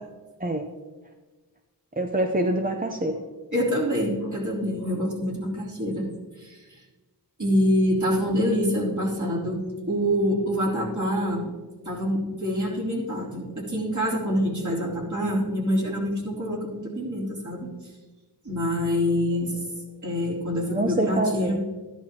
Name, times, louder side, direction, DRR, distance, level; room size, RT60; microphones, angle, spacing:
voice 1, 2.0-3.2 20.7-21.6, right 1 dB, 20° right, 4 dB, 0.7 m, -25 dB
voice 2, 3.5-6.0 6.4-6.8 7.4-9.6 9.9-11.5 11.8-17.7 18.5-19.7 20.0-21.6, equal, 45° right, -4 dB, 3.6 m, -26 dB
13.5 x 11.0 x 3.0 m, 1.3 s
wide cardioid pair, 55°, 40 cm